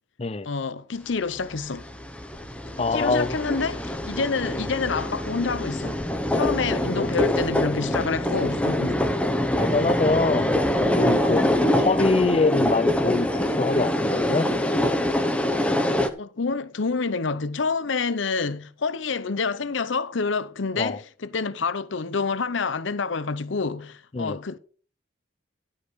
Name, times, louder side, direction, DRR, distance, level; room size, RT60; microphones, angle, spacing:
voice 1, 0.4-1.8 2.8-6.0 6.3-9.0 16.2-24.6, left 4 dB, 80° left, 0.7 m, -28 dB
sound 1, 1.7-16.1, left 1 dB, 5° left, 0.8 m, -24 dB
voice 2, 2.8-3.4 6.6-7.1 9.5-11.4 11.7-14.5 20.8-21.0 24.1-24.4, left 3 dB, 30° left, 0.4 m, -24 dB
12.0 x 5.4 x 6.2 m
head